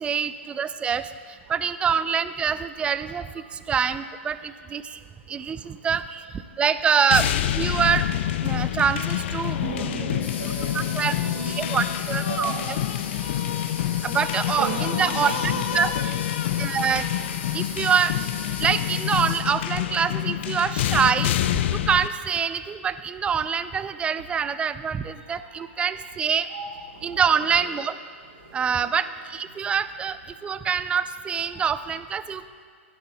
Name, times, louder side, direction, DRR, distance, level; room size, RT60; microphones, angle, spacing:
voice 1, 0.0-1.0 1.5-3.2 3.7-5.0 5.3-6.2 6.6-7.3 7.6-8.0 8.4-10.1 11.0-11.2 11.5-12.5 14.0-15.3 15.7-15.9 16.6-17.0 17.5-18.1 18.6-21.3 21.7-26.5 27.0-28.0 28.5-29.1 29.3-30.2 30.4-32.5, right 7 dB, 15° right, 13 dB, 0.3 m, -25 dB
sound 1, 7.1-22.1, left 12 dB, 60° left, 0.3 m, -27 dB
voice 2, 9.5-13.3 14.2-16.1 16.6-16.7 17.1-17.2 17.6-17.8 25.1-26.1 26.5-27.7 28.3-28.9 29.5-29.6 30.0-30.1 31.5-31.6, right 3 dB, 85° right, -5 dB, 1.8 m, -37 dB
sound 2, 10.2-19.4, left 4 dB, 25° left, 1.7 m, -38 dB
17.0 x 10.5 x 2.3 m, 2.1 s
hypercardioid pair, 120°, 7 cm